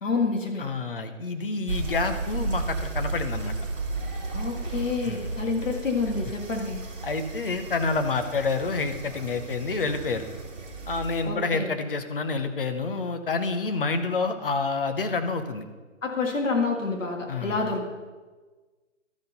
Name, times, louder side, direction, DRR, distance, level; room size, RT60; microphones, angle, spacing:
voice 1, 0.0-0.6 4.3-6.8 11.2-11.7 16.0-17.9, left 4 dB, 70° left, 2 dB, 1.8 m, -28 dB
voice 2, 0.6-3.5 5.0-5.3 7.0-10.3 10.9-15.6 17.3-17.6, left 3 dB, 45° left, 8 dB, 0.8 m, -28 dB
sound 1, 1.7-11.2, right 3 dB, 40° right, 2.3 m, -34 dB
13.0 x 4.4 x 5.2 m, 1.3 s
hypercardioid pair, 170°, 39 cm